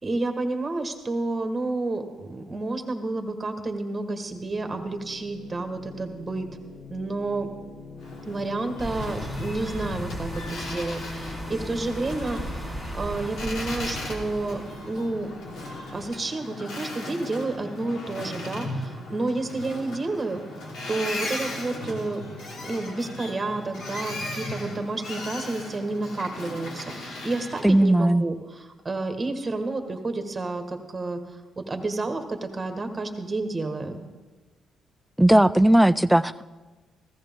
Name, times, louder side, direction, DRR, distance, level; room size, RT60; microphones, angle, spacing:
voice 1, 0.0-6.5 6.9-7.5 8.2-15.3 15.9-20.4 20.9-22.3 22.6-31.2 31.6-34.0, right 2 dB, 25° right, 6 dB, 1.6 m, -30 dB
sound 1, 4.3-16.0, left 3 dB, 60° left, 1.3 m, -43 dB
Boat Water vehicle, 8.0-27.8, left 1 dB, 75° left, 2.7 m, -37 dB
sound 2, 8.8-14.9, right 1 dB, 20° left, 2.8 m, -37 dB
voice 2, 27.6-28.2 35.2-36.4, right 1 dB, 5° right, 15 dB, 0.3 m, -17 dB
15.5 x 14.0 x 3.6 m, 1.3 s
cardioid pair, 90°, 0 cm